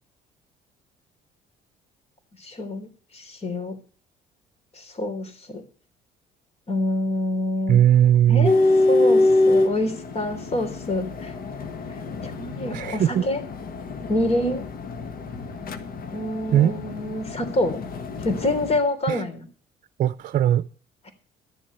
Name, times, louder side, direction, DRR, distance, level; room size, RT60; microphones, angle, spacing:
voice 1, 2.4-2.9 3.1-3.7 4.7-5.6 6.7-7.8 8.3-8.6 8.9-11.3 12.2-13.4 14.1-14.6 16.1-17.8 18.2-19.5 21.0-21.1, left 1 dB, 35° left, 3.4 m, -26 dB
voice 2, 7.7-8.5 12.7-13.2 16.5-16.7 19.1-19.2 20.0-20.6, right 10 dB, 55° right, 0.6 m, -18 dB
sound 1, 8.4-18.8, left 2 dB, 60° left, 1.5 m, -25 dB
13.0 x 7.5 x 6.6 m
cardioid pair, 110°, 17 cm